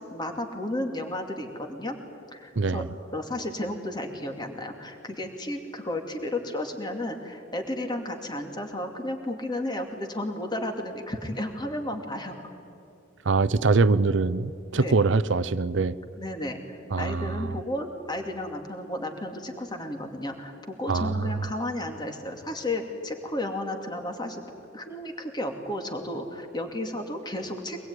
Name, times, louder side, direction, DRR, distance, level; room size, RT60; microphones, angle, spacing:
voice 1, 0.0-2.0 2.3-2.8 3.1-12.4 14.7-14.9 16.2-27.8, left 1 dB, 20° left, 4 dB, 2.6 m, -33 dB
voice 2, 2.6-2.9 13.2-16.0 16.9-17.6 20.9-21.5, right 3 dB, 65° right, 14 dB, 0.7 m, -24 dB
24.0 x 21.0 x 9.8 m, 2.9 s
head